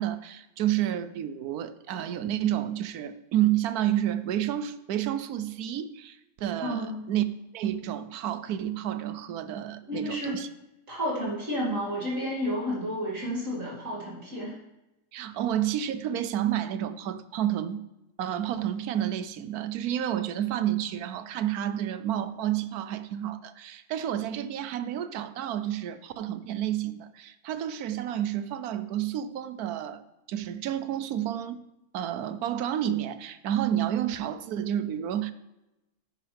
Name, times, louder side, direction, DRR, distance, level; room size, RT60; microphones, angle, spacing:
voice 1, 0.0-7.2 7.5-10.5 15.1-17.8 18.2-30.0 30.3-31.6 31.9-35.3, right 11 dB, 75° right, 13 dB, 1.2 m, -30 dB
voice 2, 6.6-7.0 9.9-10.4 10.9-14.6, equal, 55° right, -5 dB, 3.1 m, -31 dB
10.0 x 9.8 x 3.4 m, 0.94 s
omnidirectional pair, 1.6 m